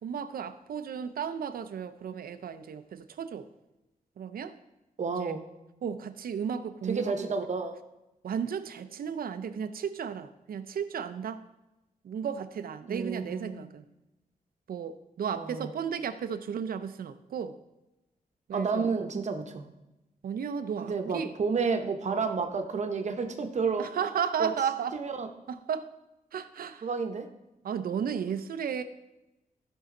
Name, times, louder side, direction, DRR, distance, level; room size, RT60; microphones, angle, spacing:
voice 1, 0.0-3.5 4.2-4.5 5.2-5.4 5.8-7.3 8.2-11.4 12.0-13.8 14.7-17.5 18.5-18.9 20.2-21.3 22.1-22.2 23.8-25.0 25.5-25.9 26.3-26.9 27.6-28.8, right 7 dB, 85° right, 11 dB, 0.6 m, -34 dB
voice 2, 5.0-5.4 6.9-7.8 12.9-13.7 15.3-15.7 18.5-19.7 20.8-23.9 24.4-24.5 24.9-25.3 26.8-27.3, right 5 dB, 50° right, 6 dB, 0.9 m, -30 dB
15.5 x 5.5 x 3.8 m, 0.98 s
wide cardioid pair, 165°, 15 cm